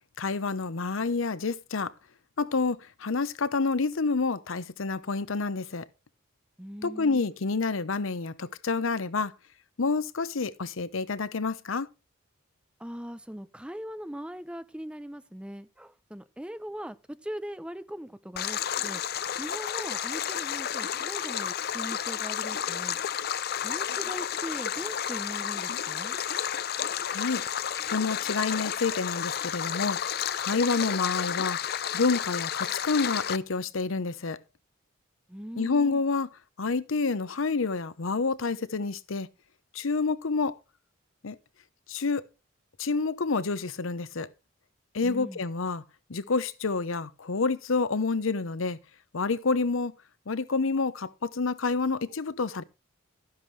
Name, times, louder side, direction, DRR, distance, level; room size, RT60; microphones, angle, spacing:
voice 1, 0.2-1.9 2.4-5.9 6.8-9.3 9.8-11.9 27.1-27.4 27.8-30.0 30.4-31.6 31.9-34.4 35.6-36.3 36.6-39.3 39.7-40.6 41.2-41.4 41.9-42.2 42.8-44.3 44.9-45.8 46.1-48.8 49.1-49.9 50.3-52.6, left 4 dB, 80° left, 0.8 m, -28 dB
voice 2, 6.6-7.2 12.8-19.0 19.4-23.0 23.6-26.2 35.3-36.0 45.0-45.4, equal, 5° right, 0.6 m, -40 dB
Stream, 18.4-33.4, left 9 dB, 50° left, 0.5 m, -31 dB
12.5 x 10.5 x 3.2 m
head